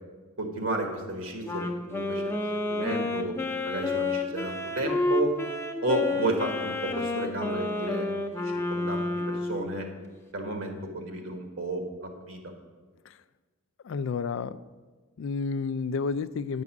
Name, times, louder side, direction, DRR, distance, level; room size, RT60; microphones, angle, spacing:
voice 1, 0.4-3.4 3.6-5.4 5.8-8.1 8.3-9.9 10.3-12.4, right 1 dB, 60° right, 4 dB, 1.4 m, -32 dB
Wind instrument woodwind instrument, 1.4-9.7, left 2 dB, 10° left, 0.6 m, -30 dB
voice 2, 13.8-14.6 15.2-16.6, left 5 dB, 60° left, 15 dB, 0.3 m, -30 dB
9.4 x 6.1 x 6.0 m, 1.4 s
head